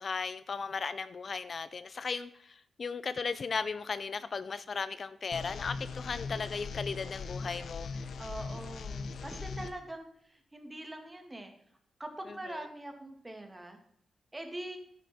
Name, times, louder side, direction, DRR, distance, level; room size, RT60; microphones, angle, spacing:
voice 1, 0.0-2.3 2.8-7.9 12.5-12.6, left 5 dB, 50° left, 14 dB, 0.5 m, -36 dB
sound 1, 5.3-9.7, left 4 dB, 80° left, 0.9 m, -40 dB
voice 2, 8.2-11.5 12.0-13.8 14.3-14.8, right 1 dB, 20° right, 5 dB, 2.2 m, -43 dB
10.0 x 10.0 x 4.3 m, 0.69 s
cardioid pair, 95°, 0 cm